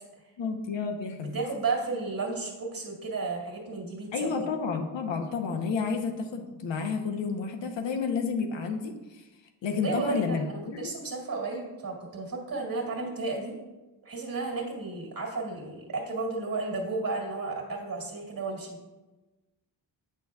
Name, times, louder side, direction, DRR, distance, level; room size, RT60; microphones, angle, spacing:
voice 1, 0.4-1.3 4.1-9.2 9.6-10.9, left 5 dB, 70° left, 3 dB, 0.9 m, -30 dB
voice 2, 1.2-4.5 9.8-13.5 14.0-18.8, right 3 dB, 45° right, -1 dB, 2.1 m, -33 dB
7.6 x 6.0 x 2.3 m, 1.1 s
cardioid pair, 65°, 46 cm